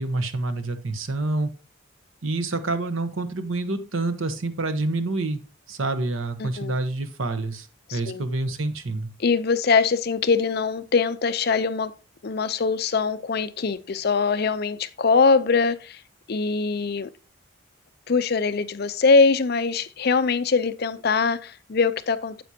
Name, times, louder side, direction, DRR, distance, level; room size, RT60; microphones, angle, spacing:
voice 1, 0.0-1.5 2.2-5.4 5.7-9.1, right 2 dB, 75° right, 1.0 m, -27 dB
voice 2, 6.4-6.8 7.9-8.2 9.2-11.9 12.2-16.0 16.3-17.1 18.1-22.4, left 4 dB, 50° left, 0.5 m, -22 dB
9.4 x 7.7 x 2.8 m
head